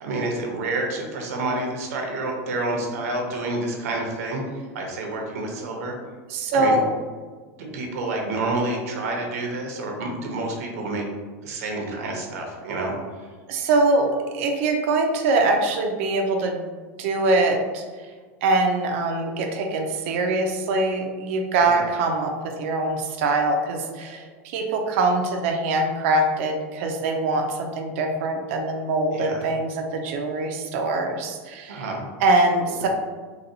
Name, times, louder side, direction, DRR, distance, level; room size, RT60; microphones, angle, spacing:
voice 1, 0.0-4.4 4.7-6.0 6.5-6.8 7.6-11.0 11.4-12.9 21.6-21.8 29.1-29.5 31.7-32.1 32.7-32.9, right 2 dB, 85° right, 1 dB, 0.8 m, -28 dB
voice 2, 6.3-6.9 13.5-16.6 17.0-17.8 18.4-31.8 32.2-32.9, right 2 dB, 60° right, 3 dB, 0.4 m, -23 dB
4.0 x 2.2 x 2.7 m, 1.5 s
supercardioid pair, 165°, 8 cm